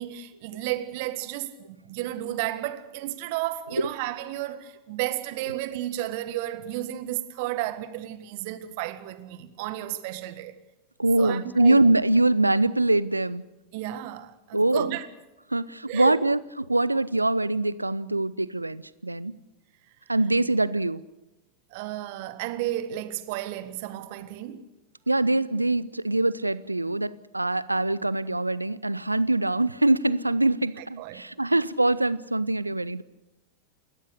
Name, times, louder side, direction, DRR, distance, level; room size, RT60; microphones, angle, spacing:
voice 1, 0.0-10.6 11.2-11.9 13.7-15.1 15.9-16.2 21.7-24.6 30.8-31.2, right 14 dB, 50° right, 1.5 m, -33 dB
voice 2, 11.0-13.4 14.5-14.9 15.5-16.4 16.7-19.3 20.1-21.0 25.1-33.0, right 2 dB, 85° right, 0.6 m, -23 dB
29.5 x 14.0 x 6.6 m
figure-of-eight pair, 90°, 0 cm